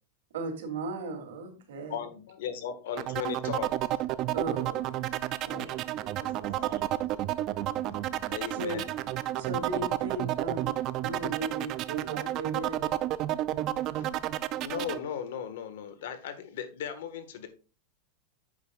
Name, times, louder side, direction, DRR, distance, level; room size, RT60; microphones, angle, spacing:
voice 1, 0.3-2.0 4.3-5.8 6.6-6.8 7.8-8.1 8.5-8.8 9.3-10.7 11.0-12.8, right 2 dB, 90° right, 2.8 m, -37 dB
voice 2, 1.9-3.8 7.7-7.8 8.3-8.8 13.9-14.2 14.6-17.5, left 8 dB, 70° left, 1.5 m, -37 dB
sound 1, 3.0-15.0, right 14 dB, 30° right, 0.4 m, -31 dB
voice 3, 5.4-6.9, right 6 dB, 60° right, 3.3 m, -47 dB
10.0 x 8.1 x 2.4 m
supercardioid pair, 170°, 0 cm